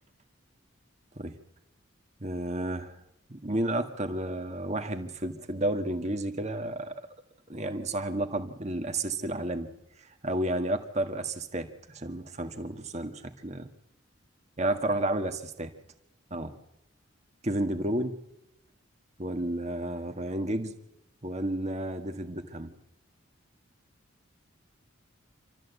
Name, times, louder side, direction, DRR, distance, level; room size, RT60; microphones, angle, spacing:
voice 1, 2.2-3.0 3.3-6.9 7.5-9.7 10.0-13.7 14.6-15.7 16.3-16.5 17.4-18.2 19.2-20.7 21.2-22.7, right 1 dB, 35° right, 7 dB, 1.7 m, -31 dB
27.5 x 13.5 x 8.2 m, 0.90 s
head